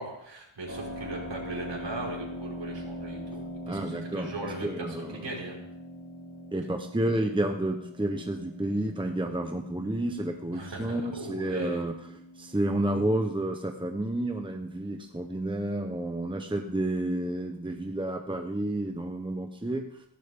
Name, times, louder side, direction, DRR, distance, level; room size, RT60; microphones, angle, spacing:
voice 1, 0.0-5.6 10.5-11.8, right 2 dB, 65° right, -2 dB, 5.4 m, -38 dB
Keyboard (musical), 0.7-13.2, equal, 30° right, 7.5 m, -42 dB
voice 2, 3.7-5.3 6.5-12.0 12.4-19.8, right 1 dB, 10° right, 4 dB, 1.0 m, -30 dB
17.0 x 15.5 x 3.8 m, 0.74 s
wide cardioid pair, 110°, 46 cm